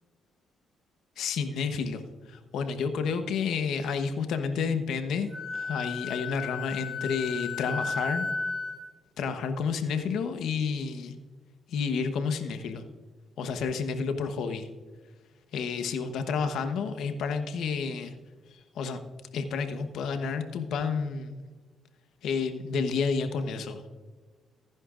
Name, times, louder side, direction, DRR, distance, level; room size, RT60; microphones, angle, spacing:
voice 1, 1.2-2.0 2.3-8.3 9.2-11.1 11.7-12.8 13.4-14.7 15.5-18.1 18.7-19.0 19.3-21.4 22.2-23.9, left 5 dB, 75° left, 8 dB, 1.0 m, -30 dB
Wind instrument woodwind instrument, 5.3-8.8, left 4 dB, 25° right, 3.7 m, -33 dB
14.5 x 10.5 x 2.5 m, 1.4 s
cardioid pair, 80°, 0 cm